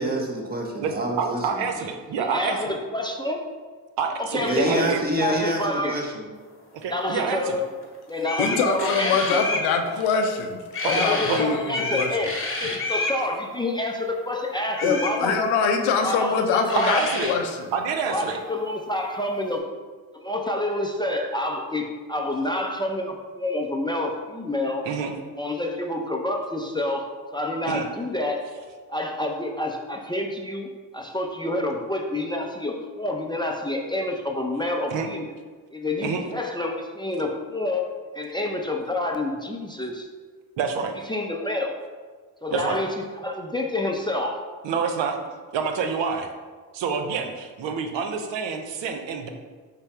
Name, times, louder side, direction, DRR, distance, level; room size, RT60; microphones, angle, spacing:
voice 1, 0.0-1.6 4.4-6.3, right 1 dB, 20° right, 0 dB, 1.0 m, -27 dB
voice 2, 1.2-2.8 4.0-5.0 6.7-7.6 10.8-11.4 16.7-17.3 17.7-18.4 24.8-25.1 27.7-27.9 34.9-35.1 36.0-36.2 40.6-40.9 42.5-42.8 44.6-45.2 45.5-46.3 46.7-49.3, right 6 dB, 65° right, 5 dB, 0.6 m, -27 dB
voice 3, 2.2-3.4 4.2-4.9 5.2-6.0 6.9-7.6 8.1-9.4 10.9-15.4 16.0-17.0 18.1-19.7 20.1-24.8 25.4-27.1 27.3-28.5 28.9-35.3 35.7-40.1 41.1-41.8 42.4-42.9 43.2-44.4, left 1 dB, 10° left, 1 dB, 0.5 m, -28 dB
sound 1, 7.8-7.9 8.2-9.7 10.7-11.4 11.7-13.2 14.7-15.2 16.4-16.5 16.7-17.4, left 2 dB, 25° left, 1.0 m, -28 dB
voice 4, 8.4-12.1 14.8-17.7, left 5 dB, 80° left, 5 dB, 0.6 m, -24 dB
5.5 x 2.0 x 4.3 m, 1.4 s
hypercardioid pair, 45°, 47 cm